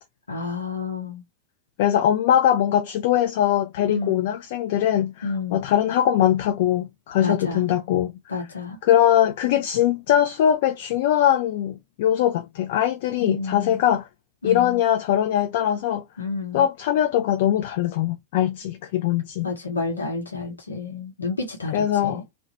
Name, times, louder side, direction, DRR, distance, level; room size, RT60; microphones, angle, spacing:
voice 1, 0.3-1.2 3.9-4.3 5.2-5.6 7.2-7.6 8.3-8.8 13.2-13.8 14.4-14.8 16.2-16.7 19.4-22.2, left 4 dB, 75° left, 0.8 m, -30 dB
voice 2, 1.8-8.1 8.8-14.1 14.4-16.0 16.5-19.5 21.7-22.2, left 11 dB, 50° left, 0.3 m, -21 dB
2.9 x 2.0 x 2.6 m
figure-of-eight pair, 90°, 0 cm